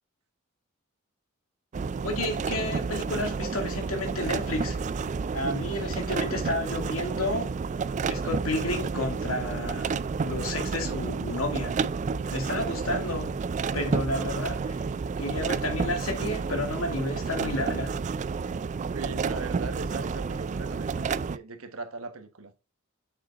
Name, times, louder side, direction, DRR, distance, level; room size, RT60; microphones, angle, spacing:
sound 1, 1.7-21.4, right 5 dB, 35° right, 0.3 m, -30 dB
voice 1, 2.0-4.8 5.3-7.5 8.1-11.7 12.3-13.4 13.7-14.8 15.2-18.0, left 2 dB, 75° left, 2.3 m, -31 dB
voice 2, 18.9-22.5, right 4 dB, 85° right, 1.3 m, -40 dB
7.5 x 6.8 x 2.5 m
head